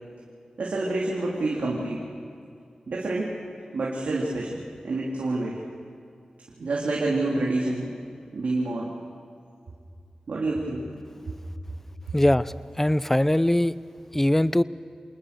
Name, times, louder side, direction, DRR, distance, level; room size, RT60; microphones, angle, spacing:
voice 1, 0.6-2.0 2.9-3.3 3.7-5.6 6.6-7.9 8.3-8.9 10.3-10.8 12.1-12.2, right 2 dB, 80° right, -4 dB, 3.2 m, -27 dB
voice 2, 12.1-13.8 14.1-14.6, left 1 dB, 15° left, 17 dB, 0.7 m, -21 dB
27.0 x 19.5 x 6.8 m, 2.4 s
cardioid pair, 45°, 2 cm